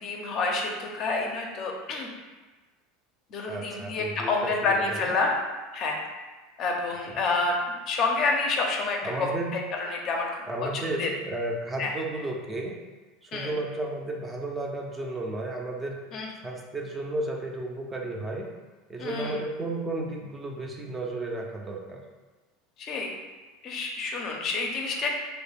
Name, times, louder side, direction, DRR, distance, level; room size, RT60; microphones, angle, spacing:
voice 1, 0.0-2.1 3.3-5.3 5.7-6.0 6.6-9.3 9.5-10.3 10.6-11.1 11.8-11.9 13.3-13.5 16.1-16.3 19.0-19.4 22.8-23.1 23.6-25.1, left 3 dB, 45° left, 0 dB, 0.5 m, -28 dB
voice 2, 3.5-5.1 7.0-7.2 9.0-9.5 10.5-12.8 13.2-16.0 16.4-18.5 18.9-22.0, right 2 dB, 20° right, 0 dB, 0.4 m, -33 dB
2.3 x 2.0 x 3.3 m, 1.2 s
supercardioid pair, 110°, 0 cm